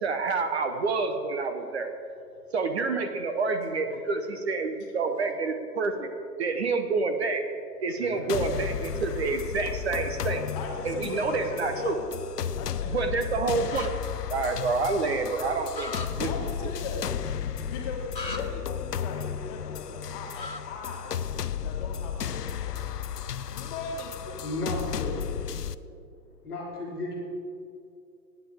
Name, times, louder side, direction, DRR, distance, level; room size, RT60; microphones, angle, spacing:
voice 1, 0.0-1.9 2.5-6.1 6.4-7.4 7.8-10.4 10.8-12.0 12.9-13.9 14.3-15.9 16.2-16.3, right 4 dB, 40° right, 7 dB, 1.0 m, -28 dB
voice 2, 8.0-8.3 10.5-12.0 12.6-13.0 16.2-17.1 17.7-21.3 21.6-22.9 23.4-24.5, left 4 dB, 25° left, 0 dB, 1.9 m, -39 dB
sound 1, 8.3-25.7, left 8 dB, 70° left, 0.6 m, -34 dB
sound 2, 13.7-13.9 15.7-16.1 18.1-18.4 20.4-20.6, left 3 dB, 90° left, 1.5 m, -35 dB
voice 3, 24.4-25.2 26.4-27.1, left 1 dB, 5° left, -13 dB, 0.5 m, -33 dB
23.5 x 9.5 x 3.6 m, 2.5 s
figure-of-eight pair, 130°, 49 cm